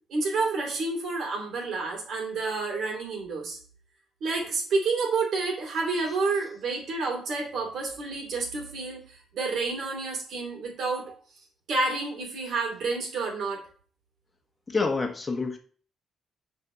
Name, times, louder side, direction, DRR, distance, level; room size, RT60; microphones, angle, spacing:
voice 1, 0.1-3.6 4.2-11.2 11.7-13.6, right 3 dB, 70° right, 1 dB, 2.8 m, -29 dB
voice 2, 14.7-15.6, left 4 dB, 25° left, 4 dB, 1.3 m, -27 dB
6.7 x 4.2 x 5.0 m, 0.43 s
cardioid pair, 90°, 0 cm